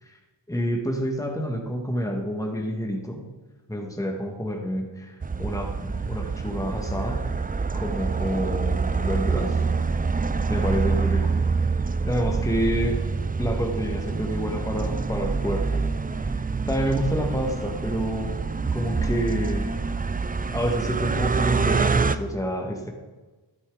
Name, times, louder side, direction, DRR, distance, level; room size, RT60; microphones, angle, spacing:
voice 1, 0.5-3.3 3.7-7.3 7.7-9.6 10.5-11.4 12.1-13.0 13.4-15.8 16.1-18.4 18.7-19.9 20.5-22.9, equal, 5° left, 1 dB, 1.7 m, -28 dB
sound 1, 5.2-22.2, right 4 dB, 20° right, 0.4 m, -26 dB
13.0 x 8.4 x 3.9 m, 1.2 s
cardioid pair, 55°, 48 cm